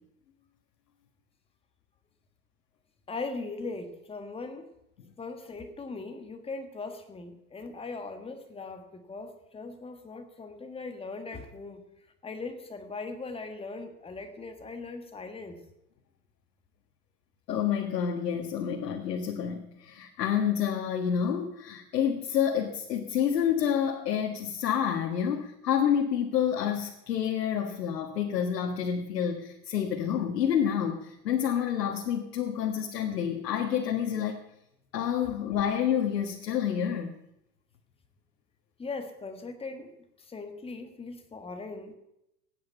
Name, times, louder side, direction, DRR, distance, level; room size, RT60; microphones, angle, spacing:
voice 1, 3.1-4.7 5.2-11.9 12.2-15.6 35.2-35.3 38.8-39.9 40.2-42.0, left 3 dB, 10° left, 6 dB, 1.6 m, -39 dB
voice 2, 17.5-34.4 34.9-37.1, left 8 dB, 85° left, 2 dB, 1.7 m, -28 dB
17.5 x 9.4 x 5.6 m, 0.83 s
hypercardioid pair, 130°, 47 cm